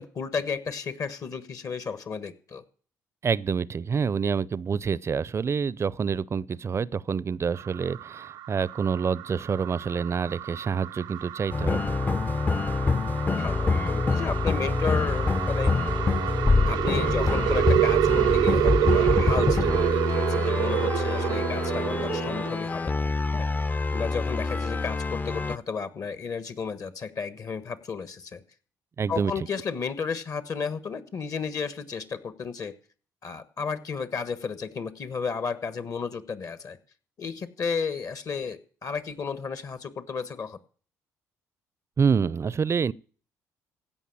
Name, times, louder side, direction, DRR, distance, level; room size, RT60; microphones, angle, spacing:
voice 1, 0.0-2.6 11.7-12.0 13.3-15.7 16.7-23.5 23.9-28.4 29.1-32.7 33.2-36.8 37.2-40.6, left 5 dB, 50° left, 1.3 m, -33 dB
voice 2, 3.2-11.8 29.0-29.3 42.0-42.9, right 6 dB, 40° right, 0.5 m, -27 dB
sound 1, 7.5-22.7, right 12 dB, 80° right, 0.6 m, -28 dB
sound 2, 11.5-25.6, left 3 dB, 25° left, 0.6 m, -26 dB
16.0 x 5.5 x 8.6 m
supercardioid pair, 65°, 7 cm